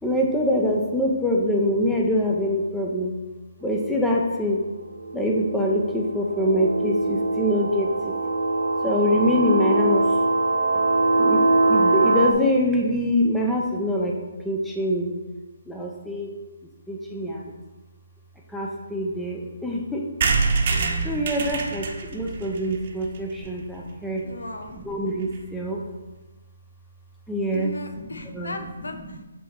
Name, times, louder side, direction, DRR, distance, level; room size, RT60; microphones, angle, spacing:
voice 1, 0.0-3.1 3.6-4.6 5.1-8.1 8.8-10.2 11.2-14.1 14.4-15.1 15.7-16.3 16.9-17.5 18.5-20.1 21.0-24.3 24.7-25.8 27.3-27.7 28.2-28.5, left 1 dB, 5° left, -2 dB, 0.7 m, -24 dB
sound 1, 4.0-4.1 4.9-12.3, right 2 dB, 70° right, 0.7 m, -22 dB
sound 2, 20.2-23.9 24.3-24.4 24.6-24.7 24.9-25.0 25.2-25.5, right 4 dB, 45° right, 1.0 m, -26 dB
voice 2, 24.2-24.8 27.5-29.2, left 2 dB, 85° left, 6 dB, 1.0 m, -36 dB
8.2 x 3.7 x 4.6 m, 1.2 s
hypercardioid pair, 155°, 0 cm